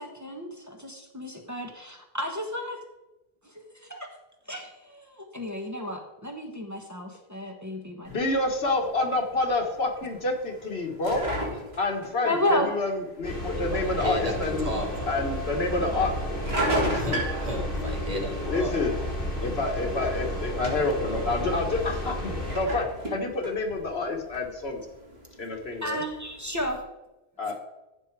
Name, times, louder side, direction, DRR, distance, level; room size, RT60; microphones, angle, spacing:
voice 1, 0.0-2.8 3.8-4.1 4.5-8.1 12.2-12.7 25.8-26.8, left 1 dB, 15° right, 2 dB, 1.3 m, -32 dB
voice 2, 8.0-11.3 11.8-14.7 15.1-16.1 16.9-17.2 18.5-19.0 19.4-24.8 25.4-26.0 27.4-27.5, left 2 dB, 80° left, 3 dB, 1.6 m, -28 dB
sound 1, 8.1-26.7, right 1 dB, 80° right, 2.9 m, -37 dB
sound 2, 13.2-22.6, equal, 60° left, 4.2 m, -32 dB
voice 3, 13.7-15.2 17.0-18.7, equal, 35° right, 1 dB, 1.8 m, -34 dB
14.5 x 5.7 x 4.7 m, 1.0 s
omnidirectional pair, 1.0 m